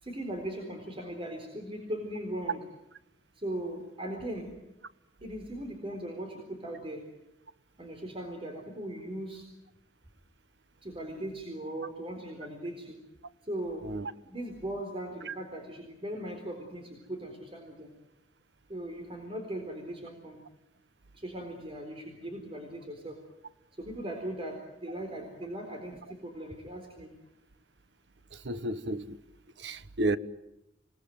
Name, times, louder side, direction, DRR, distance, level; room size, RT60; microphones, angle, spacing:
voice 1, 0.0-2.6 3.3-4.5 5.2-7.0 7.8-9.4 10.8-13.0 13.4-13.8 14.2-17.9 18.7-20.4 21.1-23.2 23.8-27.1, right 1 dB, 35° right, 4.0 m, -39 dB
voice 2, 28.3-29.2 29.6-30.2, right 2 dB, 85° right, 1.2 m, -32 dB
27.5 x 19.5 x 9.4 m
head